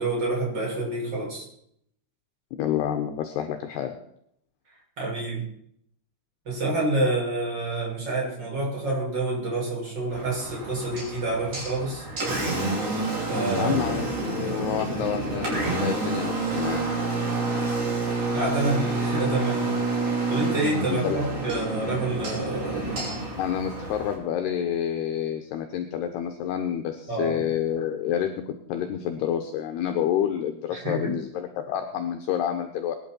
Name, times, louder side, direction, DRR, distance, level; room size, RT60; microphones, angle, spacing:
voice 1, 0.0-1.4 5.0-5.4 6.5-12.1 13.3-13.7 18.3-20.0 20.3-23.0 27.1-27.4 30.7-31.1, right 2 dB, 20° right, -4 dB, 7.2 m, -28 dB
voice 2, 2.6-3.9 13.6-16.9 20.9-21.2 23.4-33.0, left 9 dB, 75° left, 5 dB, 2.6 m, -28 dB
Engine, 10.1-24.1, right 2 dB, 40° right, 6.5 m, -28 dB
22.0 x 11.5 x 4.5 m, 0.69 s
omnidirectional pair, 5.6 m